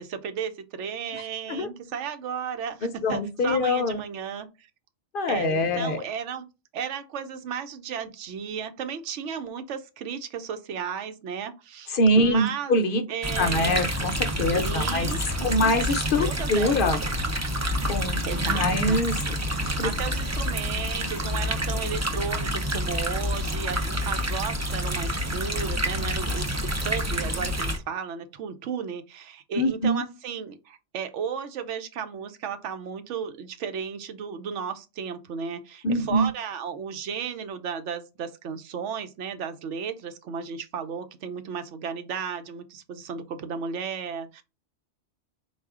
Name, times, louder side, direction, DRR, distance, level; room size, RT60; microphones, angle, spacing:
voice 1, 0.0-4.7 5.3-6.5 6.7-12.8 13.1-13.9 14.5-15.7 16.2-16.7 18.2-19.0 19.5-26.5 26.8-44.4, right 7 dB, 90° right, 1.0 m, -34 dB
voice 2, 2.8-4.0 5.1-6.0 11.9-13.0 13.4-15.1 15.4-17.0 17.9-19.9 29.6-30.0 35.8-36.3, left 1 dB, 60° left, 0.7 m, -24 dB
sound 1, 13.2-27.8, equal, 25° right, 0.4 m, -28 dB
4.2 x 2.4 x 3.5 m
omnidirectional pair, 1.2 m